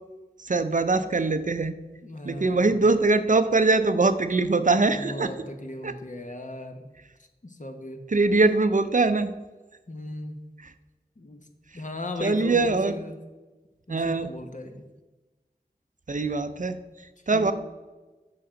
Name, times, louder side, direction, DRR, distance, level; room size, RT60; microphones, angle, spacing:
voice 1, 0.4-1.7 2.2-5.3 5.8-5.9 8.1-9.3 12.2-12.9 13.9-14.3 16.1-16.8 17.3-17.5, right 3 dB, 50° right, 10 dB, 0.5 m, -22 dB
voice 2, 2.0-2.8 4.9-6.9 7.4-8.0 9.9-10.4 11.2-11.5 11.7-13.2 13.9-14.9 17.3-17.5, left 2 dB, 50° left, 5 dB, 1.0 m, -37 dB
6.9 x 6.1 x 5.0 m, 1.1 s
wide cardioid pair, 55°, 17 cm